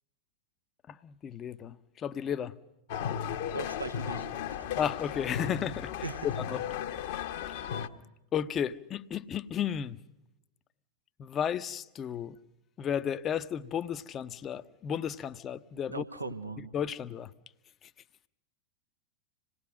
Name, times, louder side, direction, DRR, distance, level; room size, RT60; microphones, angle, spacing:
voice 1, 0.9-2.6 4.8-6.6 7.1-7.6 8.3-10.0 11.2-12.4 12.8-16.0 16.7-17.3, left 8 dB, 25° left, 0.8 m, -34 dB
sound 1, 2.9-7.9, left 9 dB, 50° left, 1.2 m, -35 dB
voice 2, 3.5-4.3 6.0-6.3 15.9-16.7, right 3 dB, 85° right, 1.2 m, -38 dB
27.0 x 18.5 x 6.4 m
figure-of-eight pair, 90°, 0 cm